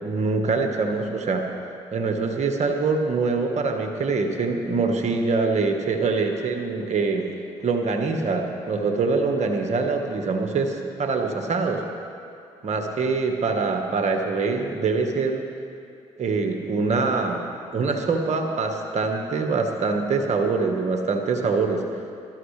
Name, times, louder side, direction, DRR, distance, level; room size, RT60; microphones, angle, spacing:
voice 1, 0.0-1.5 1.9-7.3 7.6-11.8 12.6-15.4 16.2-17.4 17.7-21.8, right 4 dB, 55° right, 4 dB, 1.5 m, -24 dB
20.0 x 13.0 x 3.3 m, 2.4 s
hypercardioid pair, 50°, 14 cm